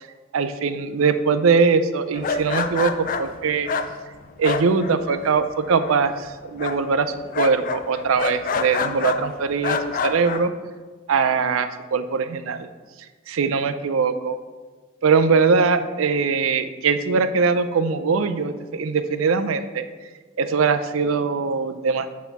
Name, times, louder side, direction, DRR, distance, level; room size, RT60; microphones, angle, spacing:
voice 1, 0.3-3.7 4.4-9.8 10.0-10.5 11.1-12.7 13.3-14.4 15.0-19.8 20.4-22.1, right 5 dB, 75° right, 11 dB, 0.4 m, -21 dB
sound 1, 2.1-5.4 5.7-6.2 6.6-9.2 9.6-10.4, left 5 dB, 40° left, 0.3 m, -27 dB
5.5 x 4.4 x 5.9 m, 1.4 s
head